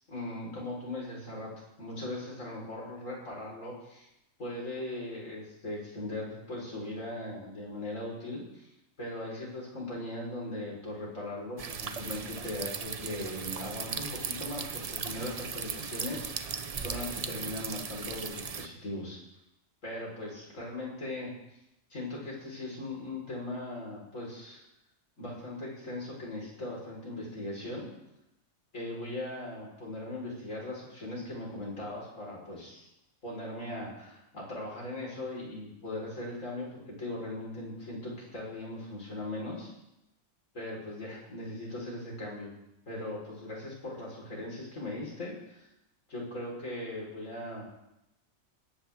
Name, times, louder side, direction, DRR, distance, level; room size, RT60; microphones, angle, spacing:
voice 1, 0.1-4.1 4.4-8.7 9.0-19.2 19.8-21.3 21.9-24.6 25.2-27.9 28.7-32.9 33.2-39.7 40.5-42.5 42.9-45.7 46.1-47.7, left 1 dB, 65° left, -4 dB, 4.8 m, -39 dB
sound 1, 11.6-18.7, right 5 dB, 45° right, 0.5 m, -37 dB
21.0 x 9.1 x 3.5 m, 0.87 s
omnidirectional pair, 1.4 m